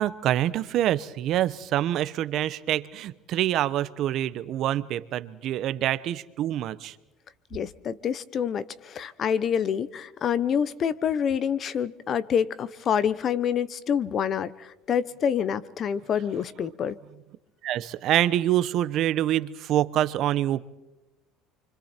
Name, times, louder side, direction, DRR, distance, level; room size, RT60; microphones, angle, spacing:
voice 1, 0.0-6.9 17.6-20.7, right 12 dB, 55° right, 15 dB, 1.0 m, -26 dB
voice 2, 7.5-17.0, left 8 dB, 40° left, 17 dB, 1.0 m, -27 dB
29.5 x 25.5 x 4.5 m, 0.95 s
cardioid pair, 120°, 0 cm